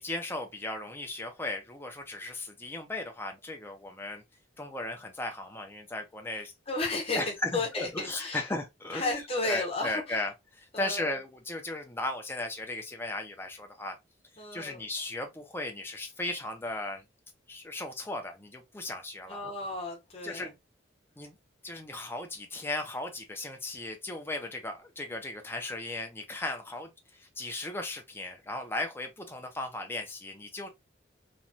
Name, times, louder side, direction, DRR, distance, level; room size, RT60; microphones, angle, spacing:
voice 1, 0.0-4.2 4.6-6.5 7.1-14.0 14.5-17.0 17.5-19.4 20.2-20.6 21.2-21.4 21.6-30.7, left 2 dB, 10° left, 0.6 m, -36 dB
voice 2, 6.7-8.5 8.9-10.2 10.7-11.1 14.4-14.9 19.3-20.5, left 2 dB, 30° left, 1.0 m, -33 dB
3.1 x 2.3 x 2.6 m
head